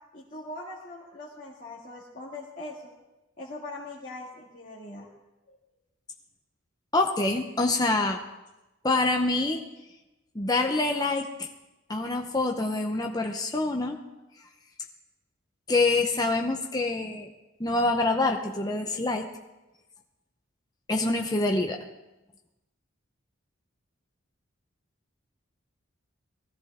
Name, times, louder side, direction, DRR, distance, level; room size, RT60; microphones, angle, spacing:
voice 1, 0.1-2.8 3.4-5.1 5.5-5.6, left 2 dB, 40° left, -6 dB, 2.2 m, -41 dB
voice 2, 6.9-8.2 8.8-9.6 10.3-11.5 11.9-14.0 15.7-17.3 17.6-19.3 20.9-21.8, left 2 dB, 20° left, 3 dB, 0.8 m, -26 dB
20.0 x 15.5 x 3.6 m, 1.0 s
head